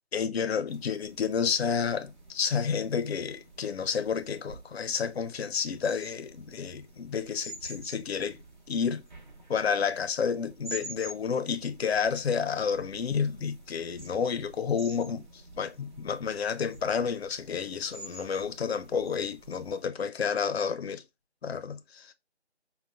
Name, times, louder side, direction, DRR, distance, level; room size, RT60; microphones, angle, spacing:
voice 1, 0.1-8.4 8.7-9.0 9.5-21.0 21.4-22.1, left 6 dB, 65° left, 0.5 m, -30 dB
sound 1, 0.7-19.8, right 2 dB, 45° right, 0.9 m, -48 dB
5.3 x 2.1 x 2.3 m
figure-of-eight pair, 165°, 34 cm